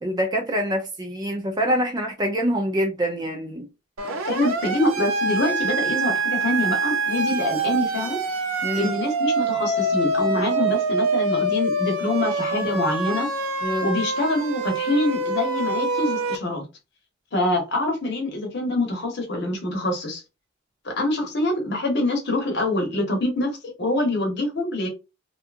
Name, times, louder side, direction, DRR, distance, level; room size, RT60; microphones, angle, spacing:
voice 1, 0.0-3.7 8.6-8.9 13.6-13.9, equal, 20° right, 0.4 m, -25 dB
Siren, 4.0-16.4, right 3 dB, 75° right, 0.6 m, -25 dB
voice 2, 4.3-8.2 8.7-13.3 13.8-16.7 17.3-20.2 20.8-24.9, left 2 dB, 50° left, 0.9 m, -25 dB
2.7 x 2.3 x 2.4 m
head